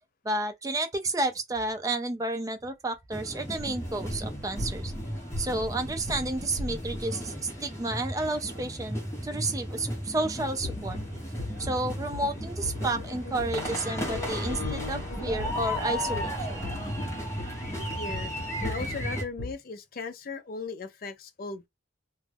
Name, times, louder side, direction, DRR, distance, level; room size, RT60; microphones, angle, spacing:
voice 1, 0.2-4.9 5.4-11.0 11.6-16.7, right 2 dB, 20° right, 0.4 m, -31 dB
sound 1, 3.1-19.2, equal, 15° left, 0.9 m, -35 dB
sound 2, 3.6-7.3 10.4-19.5, left 2 dB, 75° left, 1.0 m, -39 dB
voice 2, 18.0-18.3 18.6-21.7, left 4 dB, 50° left, 0.4 m, -37 dB
2.2 x 2.1 x 3.3 m
head